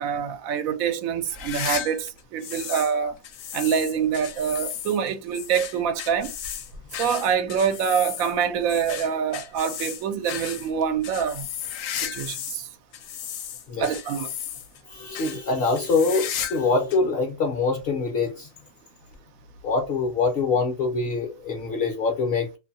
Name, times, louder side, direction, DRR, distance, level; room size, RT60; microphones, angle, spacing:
voice 1, 0.0-3.1 3.5-6.3 7.0-11.5 12.0-12.7 13.8-14.3, right 7 dB, 85° right, 1.0 m, -25 dB
Sword Fight, 1.3-2.9 3.2-12.6 12.9-14.8 15.1-15.4 15.8-16.7 16.9-17.0 17.8-17.9 19.1-19.2, left 9 dB, 75° left, 1.0 m, -34 dB
voice 2, 1.4-1.7 13.7-13.9 14.9-18.5 19.6-22.6, left 4 dB, 55° left, 0.8 m, -24 dB
2.6 x 2.6 x 2.6 m
omnidirectional pair, 1.4 m